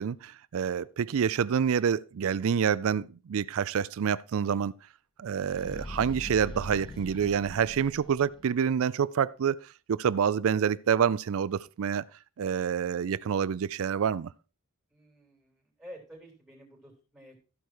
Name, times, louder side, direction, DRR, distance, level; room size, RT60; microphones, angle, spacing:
voice 1, 0.0-4.7 5.2-12.0 12.4-14.3, right 7 dB, 65° right, 0.4 m, -27 dB
sound 1, 5.4-8.7, left 1 dB, 20° left, 0.5 m, -42 dB
voice 2, 14.9-17.4, equal, ahead, 3.4 m, -50 dB
14.0 x 4.8 x 4.4 m
head